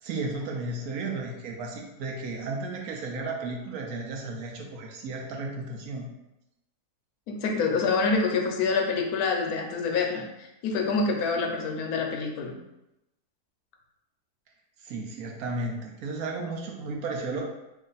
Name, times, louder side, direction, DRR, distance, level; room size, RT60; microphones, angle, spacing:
voice 1, 0.0-6.1 14.8-17.4, right 3 dB, 75° right, 0 dB, 1.0 m, -34 dB
voice 2, 7.3-12.5, left 4 dB, 75° left, 2 dB, 1.0 m, -26 dB
3.1 x 2.4 x 3.9 m, 0.93 s
omnidirectional pair, 1.7 m